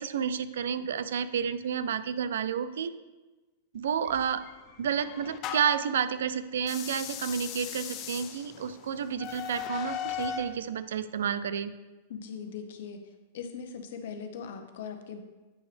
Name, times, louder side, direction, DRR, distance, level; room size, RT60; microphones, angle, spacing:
voice 1, 0.0-2.9 3.7-4.5 4.8-11.7, right 7 dB, 80° right, 13 dB, 0.4 m, -30 dB
sound 1, 4.0-5.9 6.6-10.6, left 8 dB, 35° left, 0.5 m, -38 dB
voice 2, 12.1-13.0 13.3-15.2, left 6 dB, 65° left, 7 dB, 0.9 m, -40 dB
8.6 x 5.9 x 3.3 m, 1.2 s
hypercardioid pair, 140°, 0 cm